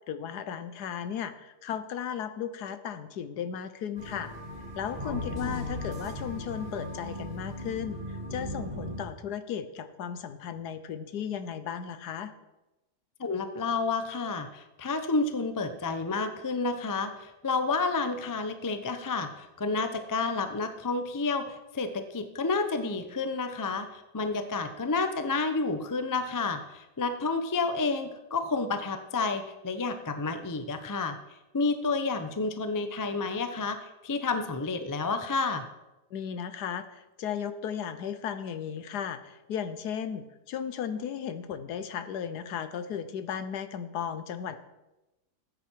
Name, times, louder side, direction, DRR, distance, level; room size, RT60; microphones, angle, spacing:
voice 1, 0.1-4.3 4.8-12.3 36.1-44.6, left 8 dB, 70° left, 11 dB, 1.3 m, -35 dB
sound 1, 4.0-9.0, equal, 25° right, 2.4 m, -37 dB
voice 2, 5.0-5.6 13.2-31.2 31.5-35.6, left 3 dB, 25° left, 9 dB, 0.4 m, -30 dB
14.0 x 9.5 x 4.6 m, 1.0 s
omnidirectional pair, 1.8 m